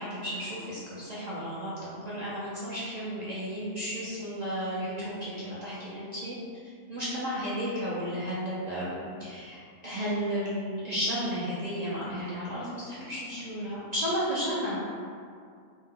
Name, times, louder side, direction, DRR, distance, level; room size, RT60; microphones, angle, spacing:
voice 1, 0.0-6.4 6.9-9.6 9.8-14.8, equal, 55° right, -10 dB, 0.4 m, -33 dB
2.5 x 2.0 x 3.6 m, 2.3 s
omnidirectional pair, 1.4 m